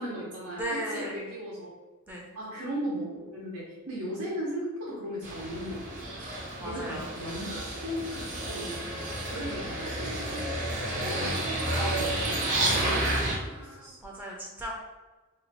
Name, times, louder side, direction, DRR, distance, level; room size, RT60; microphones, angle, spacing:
voice 1, 0.0-1.7 2.3-6.1 6.6-10.5 11.0-11.2 11.8-12.4 12.7-14.0, equal, 85° right, -6 dB, 0.9 m, -37 dB
voice 2, 0.6-1.2 2.1-2.3 6.6-7.1 10.7-11.0 13.1-14.8, equal, 10° right, -2 dB, 0.4 m, -37 dB
sound 1, 5.2-13.4, right 1 dB, 35° right, 0.8 m, -31 dB
2.7 x 2.3 x 4.1 m, 1.2 s
head